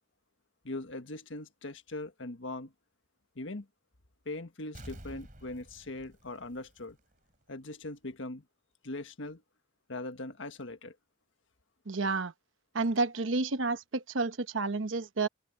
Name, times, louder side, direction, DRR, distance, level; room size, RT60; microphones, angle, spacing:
voice 1, 0.6-2.7 3.3-3.7 4.2-7.0 7.5-8.4 8.8-9.4 9.9-10.9, left 2 dB, 85° left, 1.5 m, -40 dB
Explosion, 4.7-7.3 7.7-7.8, right 1 dB, 45° right, 4.0 m, -50 dB
voice 2, 11.9-12.3 12.7-15.3, right 3 dB, 85° right, 1.0 m, -30 dB
open air
head